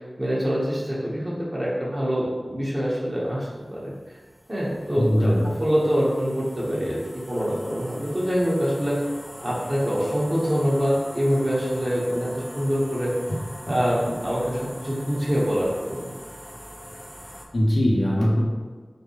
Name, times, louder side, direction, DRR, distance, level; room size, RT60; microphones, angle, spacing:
voice 1, 0.2-3.9 4.5-9.0 9.4-13.1 13.7-16.1, equal, 35° right, -7 dB, 1.3 m, -25 dB
sound 1, 3.0-17.5, equal, 5° right, 0.6 m, -43 dB
voice 2, 4.9-5.4 17.5-18.4, equal, 75° left, -4 dB, 0.8 m, -20 dB
5.0 x 2.3 x 3.2 m, 1.4 s
wide cardioid pair, 40°, 0 cm